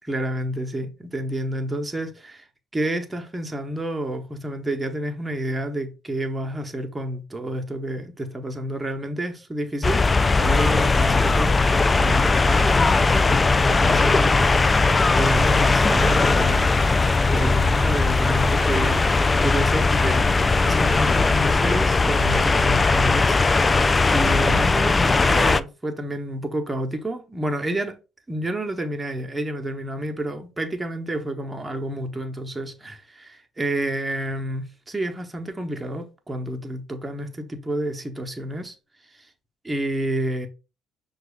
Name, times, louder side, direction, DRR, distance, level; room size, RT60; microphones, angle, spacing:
voice 1, 0.1-2.4 2.7-10.0 10.4-16.9 17.3-23.8 24.1-27.9 28.3-38.7 39.1-39.3 39.6-40.5, right 1 dB, 15° right, 1.0 m, -29 dB
sound 1, 9.8-25.6, left 3 dB, 25° left, 0.3 m, -19 dB
5.8 x 2.4 x 3.5 m
hypercardioid pair, 55°, 0 cm